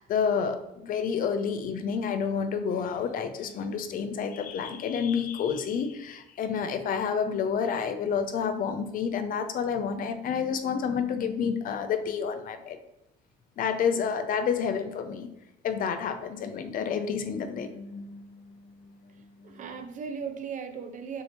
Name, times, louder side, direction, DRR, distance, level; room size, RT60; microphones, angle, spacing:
voice 1, 0.0-12.8 13.6-15.3 15.6-18.2, left 6 dB, 55° left, 9 dB, 0.6 m, -29 dB
voice 2, 19.1-21.2, right 6 dB, 50° right, 6 dB, 0.7 m, -38 dB
6.3 x 2.8 x 2.9 m, 0.88 s
cardioid pair, 110°, 17 cm